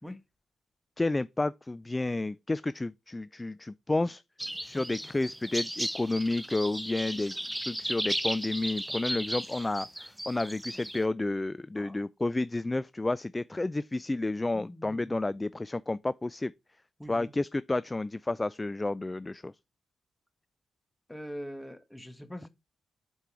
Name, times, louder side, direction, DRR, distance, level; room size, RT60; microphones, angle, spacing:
voice 1, 1.0-4.2 4.6-7.3 7.7-16.5 17.1-19.5, left 2 dB, 25° left, 0.3 m, -31 dB
sound 1, 4.4-11.0, equal, 5° right, 0.9 m, -35 dB
voice 2, 14.5-15.2 17.0-17.3 21.1-22.5, equal, 10° left, 1.5 m, -43 dB
6.7 x 4.6 x 4.7 m
supercardioid pair, 45°, 0 cm